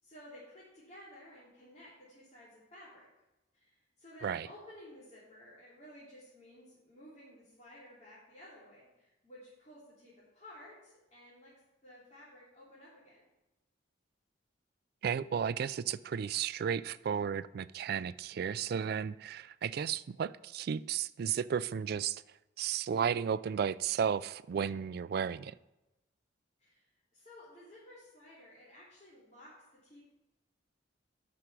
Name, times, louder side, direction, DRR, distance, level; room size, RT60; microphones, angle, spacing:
voice 1, 0.0-3.1 3.5-11.5 11.8-13.2 26.6-26.8 27.1-29.5 29.8-30.1, left 1 dB, 40° left, 3.1 m, -54 dB
voice 2, 15.0-22.2 22.6-25.5, right 7 dB, 60° right, 0.3 m, -33 dB
9.7 x 6.0 x 6.0 m
head